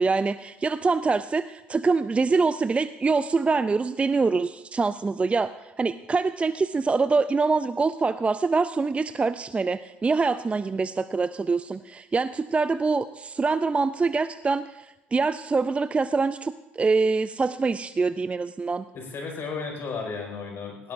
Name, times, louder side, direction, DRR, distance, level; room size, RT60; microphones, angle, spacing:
voice 1, 0.0-18.8, right 4 dB, 20° right, 13 dB, 0.4 m, -25 dB
voice 2, 18.9-20.9, left 4 dB, 50° left, 1 dB, 5.2 m, -34 dB
18.0 x 17.0 x 2.6 m, 1.0 s
hypercardioid pair, 60°, 5 cm